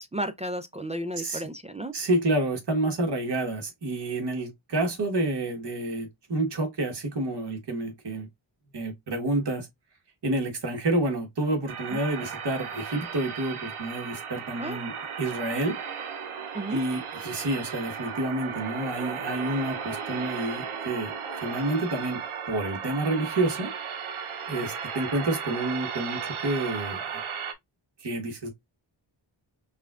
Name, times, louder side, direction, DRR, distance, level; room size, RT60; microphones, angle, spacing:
voice 1, 0.0-1.9 11.9-12.0 14.6-14.8 16.5-16.8, right 1 dB, 15° right, 0.4 m, -33 dB
voice 2, 1.9-8.3 8.7-9.7 10.2-15.8 16.7-21.1 21.4-22.2 22.5-23.7 24.5-27.2 28.0-28.5, right 2 dB, 55° right, 1.5 m, -29 dB
sound 1, 11.7-27.5, right 6 dB, 85° right, 0.7 m, -35 dB
5.4 x 2.3 x 2.4 m
cardioid pair, 60°, 48 cm